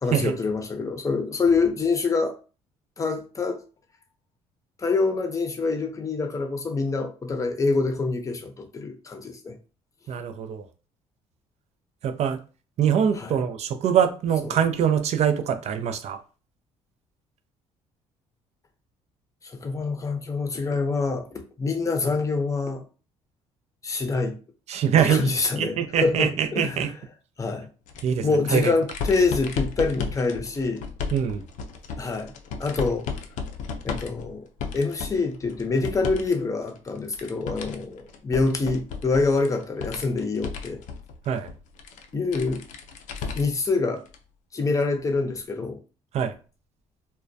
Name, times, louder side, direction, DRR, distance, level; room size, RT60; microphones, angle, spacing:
voice 1, 0.0-2.4 3.0-3.6 4.8-9.6 13.1-13.4 14.5-14.6 19.4-21.3 21.6-22.8 23.8-24.4 25.1-26.9 27.4-27.7 28.2-30.8 32.0-32.3 32.6-33.1 33.8-34.4 34.7-40.8 42.1-42.6 43.3-44.0 44.5-45.8, left 3 dB, 25° left, 0.6 m, -26 dB
voice 2, 10.1-10.7 12.0-12.4 12.8-16.2 24.7-25.2 25.6-26.9 28.0-28.7 31.1-31.4 41.3-41.5 46.1-46.3, right 8 dB, 55° right, 0.4 m, -23 dB
sound 1, 27.9-36.3 36.7-43.7 44.1-44.2 45.4-45.5, left 5 dB, 70° left, 0.4 m, -35 dB
2.2 x 2.2 x 2.5 m
supercardioid pair, 75°, 13 cm